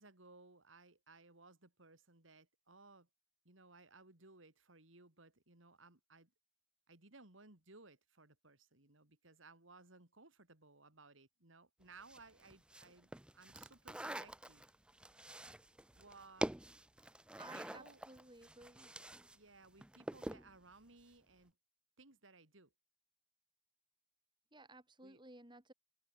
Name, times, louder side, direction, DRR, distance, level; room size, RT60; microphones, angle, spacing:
voice 1, 0.0-3.1 3.5-6.3 6.9-14.6 15.1-15.2 15.9-16.5 17.5-18.0 19.3-21.5 22.0-22.7 25.0-25.2, right 3 dB, 85° right, 3.7 m, -61 dB
sound 1, 12.0-19.4 19.6-20.5, right 1 dB, 5° right, 0.4 m, -46 dB
voice 2, 17.4-18.9 24.5-25.7, right 2 dB, 25° right, 4.2 m, -57 dB
head